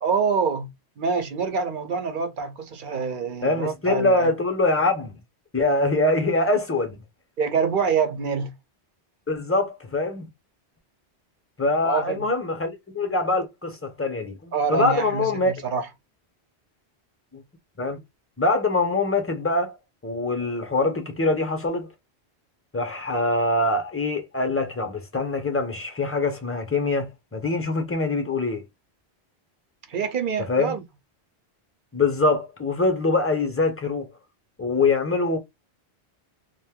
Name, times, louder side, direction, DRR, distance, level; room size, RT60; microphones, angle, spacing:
voice 1, 0.0-4.3 7.4-8.5 11.8-12.2 14.5-15.9 29.9-30.8, right 5 dB, 55° right, 0.7 m, -26 dB
voice 2, 3.4-5.2 5.5-7.0 9.3-10.3 11.6-15.5 17.3-17.4 17.8-18.0 18.4-19.8 20.0-21.9 22.7-28.6 30.5-30.7 31.9-34.0 34.6-35.4, left 2 dB, 15° left, 0.6 m, -24 dB
2.6 x 2.2 x 3.5 m
omnidirectional pair, 1.1 m